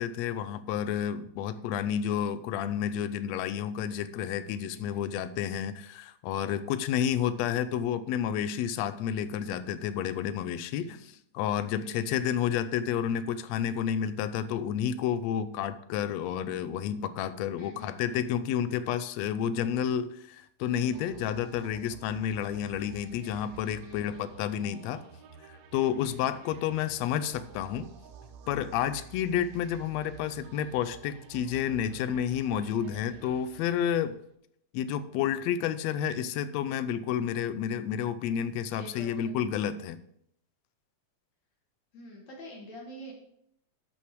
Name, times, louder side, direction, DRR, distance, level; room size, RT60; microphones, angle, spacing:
voice 1, 0.0-25.0 25.5-27.9 28.5-34.2 34.7-40.0, left 9 dB, 80° left, 13 dB, 1.6 m, -30 dB
voice 2, 11.8-12.2 17.6-18.0 23.8-24.2 26.0-26.4 38.8-39.4 41.9-43.1, equal, 65° left, 0 dB, 2.6 m, -47 dB
sound 1, 20.6-34.3, right 7 dB, 70° right, 2.0 m, -51 dB
12.5 x 5.7 x 4.7 m, 0.73 s
omnidirectional pair, 3.5 m